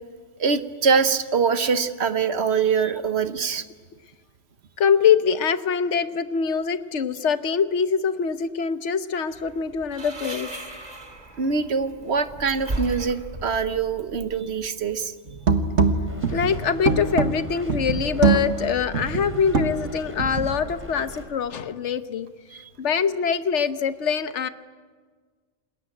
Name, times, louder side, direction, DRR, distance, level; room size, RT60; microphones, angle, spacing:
voice 1, 0.4-3.6 11.4-15.1 22.5-22.7, right 5 dB, 60° right, 11 dB, 1.3 m, -24 dB
voice 2, 4.8-10.5 16.3-22.3 22.8-24.5, left 6 dB, 70° left, 11 dB, 1.3 m, -24 dB
sound 1, 9.3-15.0, right 1 dB, 35° right, 2.7 m, -36 dB
sound 2, 15.3-20.6, right 4 dB, 90° right, 1.8 m, -24 dB
sound 3, 16.1-21.3, equal, 10° right, 3.8 m, -41 dB
28.0 x 20.5 x 9.1 m, 1.6 s
omnidirectional pair, 1.2 m